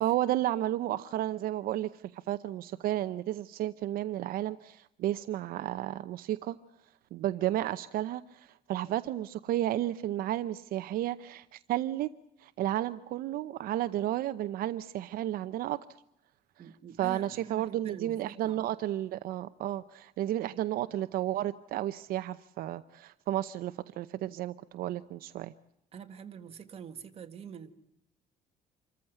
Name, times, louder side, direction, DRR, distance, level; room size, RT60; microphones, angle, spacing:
voice 1, 0.0-6.6 7.1-12.1 12.4-15.8 17.0-25.5, right 13 dB, 75° right, 11 dB, 0.8 m, -32 dB
voice 2, 16.6-18.6 25.9-27.7, right 7 dB, 40° right, 6 dB, 1.8 m, -45 dB
27.0 x 14.5 x 9.2 m, 0.81 s
cardioid pair, 145°, 15 cm